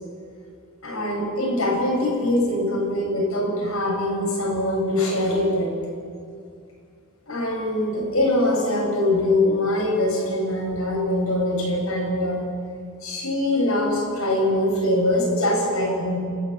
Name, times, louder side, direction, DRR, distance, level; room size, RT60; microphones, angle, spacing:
voice 1, 0.8-5.7 7.3-12.4 13.0-16.2, left 1 dB, 85° left, -2 dB, 7.9 m, -23 dB
29.0 x 11.0 x 9.8 m, 2.3 s
head